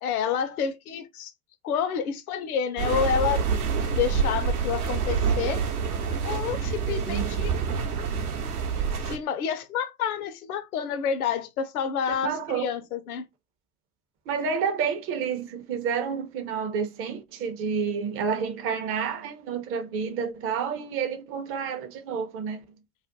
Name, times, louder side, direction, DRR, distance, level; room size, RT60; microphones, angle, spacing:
voice 1, 0.0-1.3 1.6-3.4 3.9-5.6 6.2-7.5 9.0-13.2, left 7 dB, 70° left, 0.7 m, -29 dB
sound 1, 2.8-9.2, right 6 dB, 75° right, 0.8 m, -27 dB
voice 2, 7.0-7.5 12.2-12.7 14.3-22.6, right 6 dB, 30° right, 0.5 m, -29 dB
2.4 x 2.1 x 2.6 m
figure-of-eight pair, 75°, 46 cm